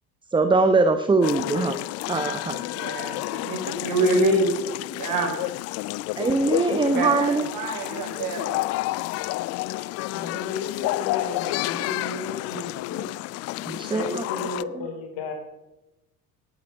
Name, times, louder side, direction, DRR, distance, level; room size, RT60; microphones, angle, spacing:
voice 1, 0.3-2.6 6.2-7.5 13.7-14.2, right 3 dB, 10° right, 10 dB, 0.8 m, -22 dB
sound 1, 1.2-14.6, left 19 dB, 35° left, 0.4 m, -30 dB
voice 2, 2.7-4.5 4.9-5.3 6.6-8.6, right 2 dB, 45° right, 3 dB, 4.6 m, -26 dB
voice 3, 9.7-13.1 13.5-15.3, left 4 dB, 50° left, 3 dB, 4.5 m, -34 dB
18.0 x 8.9 x 5.7 m, 1.0 s
figure-of-eight pair, 60°, 47 cm